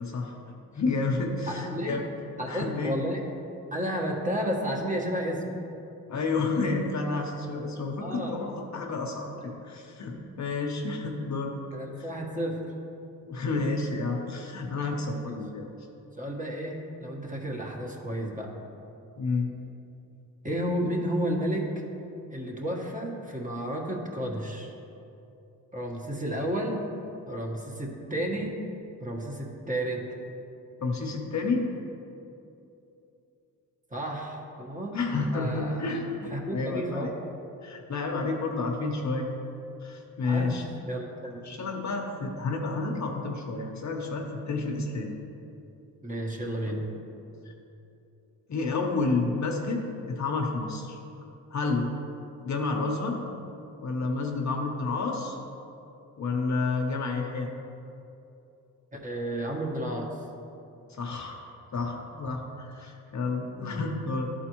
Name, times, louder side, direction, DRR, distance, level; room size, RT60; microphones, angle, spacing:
voice 1, 0.0-2.0 2.5-2.9 6.1-11.5 13.2-15.7 19.2-19.5 30.8-31.7 34.9-37.1 37.6-39.3 39.8-40.6 41.4-45.1 46.6-46.7 48.5-51.0 51.5-51.9 52.4-53.2 53.8-55.4 56.2-57.5 61.0-61.4 61.7-64.3, left 3 dB, 45° left, 1 dB, 0.9 m, -30 dB
voice 2, 1.5-2.0 2.4-3.2 3.7-5.6 8.0-8.4 11.7-12.6 15.3-15.4 16.2-18.5 20.4-21.6 22.3-24.7 25.7-26.8 27.3-28.6 29.0-30.0 33.9-35.0 35.3-35.9 36.3-37.1 40.2-41.4 46.0-46.9 58.9-60.2 63.6-63.8, right 1 dB, 20° right, -1 dB, 1.3 m, -32 dB
11.5 x 4.3 x 3.0 m, 2.8 s
cardioid pair, 65°, 38 cm